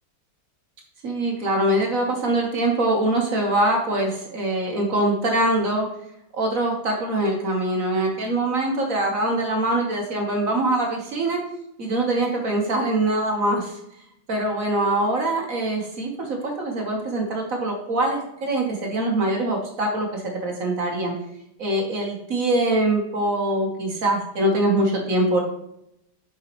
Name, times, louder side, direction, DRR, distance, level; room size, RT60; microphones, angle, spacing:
voice 1, 1.0-5.8 6.3-11.4 11.8-13.8 14.3-21.1 21.6-25.4, right 1 dB, 50° right, 1 dB, 1.4 m, -23 dB
8.0 x 5.1 x 3.0 m, 0.78 s
omnidirectional pair, 2.2 m